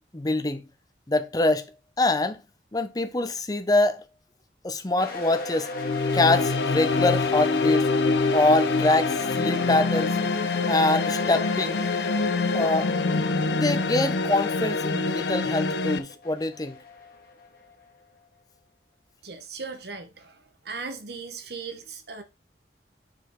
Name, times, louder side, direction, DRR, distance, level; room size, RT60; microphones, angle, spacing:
voice 1, 0.1-0.6 1.1-1.6 2.0-2.4 2.7-4.0 4.6-5.7 6.1-7.9 8.3-10.1 10.7-11.8 12.5-12.9 13.5-16.8, left 2 dB, 20° left, 0.6 m, -24 dB
sound 1, 5.0-17.8, left 4 dB, 55° left, 1.6 m, -36 dB
sound 2, 5.7-16.0, left 3 dB, 80° left, 0.6 m, -25 dB
voice 2, 19.2-22.2, right 4 dB, 65° right, 1.1 m, -38 dB
5.2 x 4.9 x 3.7 m
head